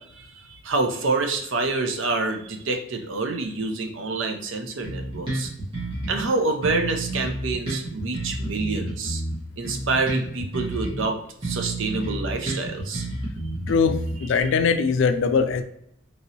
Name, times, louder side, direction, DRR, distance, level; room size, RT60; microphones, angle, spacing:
voice 1, 0.0-5.5 6.1-9.2 9.6-13.1, right 3 dB, 65° right, 4 dB, 0.5 m, -27 dB
Bass guitar, 4.8-6.3 6.6-11.1 11.4-14.4, right 1 dB, 25° right, 1.1 m, -30 dB
voice 2, 13.7-15.6, left 5 dB, 60° left, 8 dB, 0.3 m, -21 dB
3.0 x 2.8 x 2.7 m, 0.74 s
head